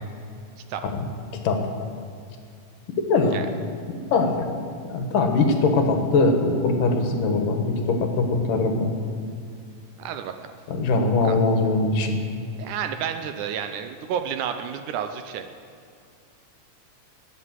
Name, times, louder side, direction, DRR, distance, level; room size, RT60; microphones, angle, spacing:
voice 1, 4.1-4.5 4.9-8.9 10.7-12.2, left 3 dB, 70° left, 4 dB, 2.9 m, -21 dB
voice 2, 10.0-10.3 11.2-11.4 12.6-15.4, right 8 dB, 75° right, 7 dB, 2.0 m, -30 dB
20.0 x 8.2 x 7.6 m, 2.3 s
omnidirectional pair, 3.9 m